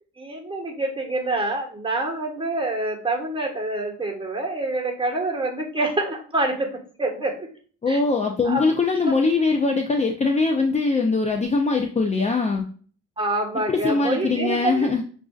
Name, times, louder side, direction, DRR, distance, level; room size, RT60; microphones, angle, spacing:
voice 1, 0.2-7.5 7.9-8.0 8.4-8.6 9.0-9.2 13.2-14.9, right 2 dB, 15° right, 0 dB, 1.3 m, -26 dB
voice 2, 7.8-12.7 13.5-15.0, left 3 dB, 25° left, 2 dB, 0.5 m, -22 dB
5.9 x 2.6 x 2.3 m, 0.42 s
cardioid pair, 90°, 30 cm